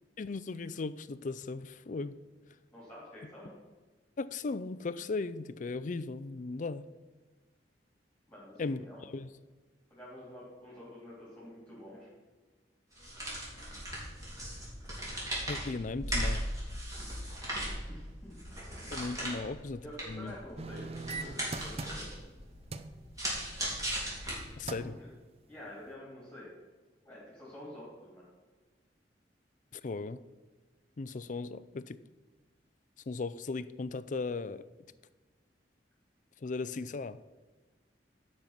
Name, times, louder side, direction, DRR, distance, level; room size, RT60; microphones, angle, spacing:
voice 1, 0.2-2.2 4.2-6.9 8.6-9.3 15.5-16.5 18.9-20.4 24.6-25.0 29.7-30.2 31.0-32.0 33.1-34.7 36.4-37.2, left 3 dB, 45° left, 15 dB, 0.4 m, -37 dB
voice 2, 2.7-3.5 8.3-9.0 9.9-12.1 17.8-18.4 19.3-19.4 19.8-22.1 24.7-25.1 25.5-26.5 27.0-28.3, left 1 dB, 10° left, -8 dB, 3.4 m, -48 dB
sound 1, 12.9-24.8, equal, 20° right, 3.4 m, -38 dB
sound 2, 20.6-22.3 22.7-23.0 24.2-24.4 24.7-25.0 25.5-25.6, right 3 dB, 35° right, 0.5 m, -40 dB
12.0 x 5.6 x 5.9 m, 1.3 s
head